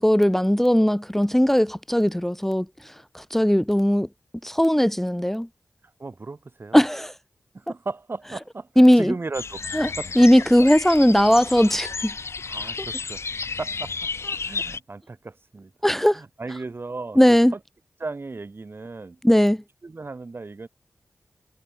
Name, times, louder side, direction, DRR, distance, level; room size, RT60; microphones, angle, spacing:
voice 1, 0.0-4.1 4.4-5.5 6.7-7.1 8.8-9.1 9.7-12.1 15.8-16.2 17.2-17.5 19.2-19.6, equal, 5° left, 0.9 m, -18 dB
voice 2, 6.0-6.8 7.5-8.7 9.0-9.6 10.0-10.2 12.5-13.2 13.6-13.9 14.4-15.7 16.1-17.2 17.5-17.6 18.0-19.2 19.8-20.7, right 3 dB, 55° right, 5.3 m, -35 dB
sound 1, 9.3-14.8, left 4 dB, 70° left, 2.0 m, -32 dB
cardioid pair, 45°, 5 cm